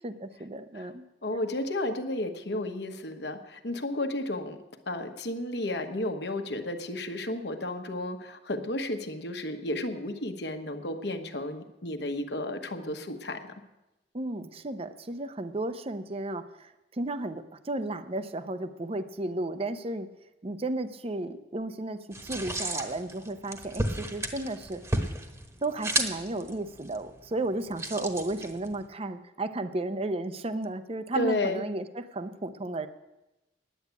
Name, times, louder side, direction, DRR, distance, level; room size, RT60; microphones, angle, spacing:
voice 1, 0.0-1.0 14.1-20.1 20.4-24.8 25.6-32.9, right 2 dB, 35° right, 11 dB, 0.6 m, -33 dB
voice 2, 1.2-4.6 4.9-13.5 31.1-31.6, left 1 dB, 65° left, 6 dB, 1.2 m, -32 dB
sound 1, 22.1-28.9, right 1 dB, 15° right, 1.1 m, -34 dB
10.0 x 9.4 x 8.2 m, 0.98 s
head